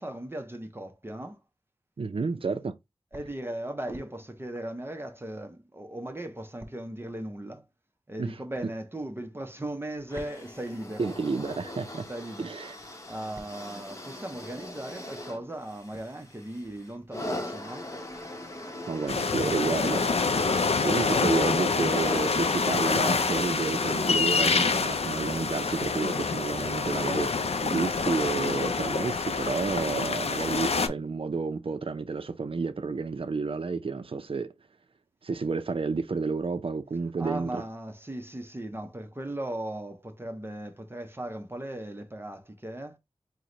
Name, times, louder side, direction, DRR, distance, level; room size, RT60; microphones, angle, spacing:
voice 1, 0.0-1.4 3.1-7.6 8.1-11.1 12.1-12.5 13.0-17.9 21.0-21.7 37.2-43.0, right 1 dB, 20° right, 0.7 m, -37 dB
voice 2, 2.0-2.8 8.2-8.4 11.0-12.1 12.4-12.8 18.9-20.0 20.6-34.5 35.2-37.6, right 4 dB, 60° right, 0.5 m, -30 dB
sound 1, 10.1-25.5 26.4-26.5, left 1 dB, 30° left, 0.9 m, -41 dB
sound 2, 19.1-30.9, left 4 dB, 80° left, 0.5 m, -27 dB
4.6 x 2.1 x 3.8 m
wide cardioid pair, 75°, 10 cm